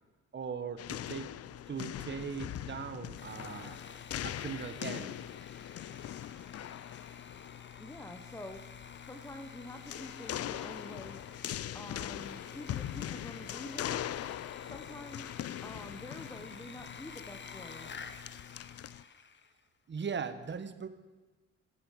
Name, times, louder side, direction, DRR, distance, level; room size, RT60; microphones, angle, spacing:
voice 1, 0.3-1.3 1.7-3.8 4.2-5.2 19.9-20.9, right 6 dB, 35° right, 10 dB, 1.3 m, -39 dB
sound 1, 0.8-19.0, left 11 dB, 55° left, 0.5 m, -42 dB
Sawing, 3.2-19.6, left 5 dB, 35° left, 1.1 m, -51 dB
voice 2, 7.8-8.6 9.0-11.3 11.7-14.1 14.6-15.3 15.6-17.9, left 1 dB, 10° left, 5 dB, 1.2 m, -47 dB
15.0 x 8.9 x 6.6 m, 1.2 s
cardioid pair, 90°, 30 cm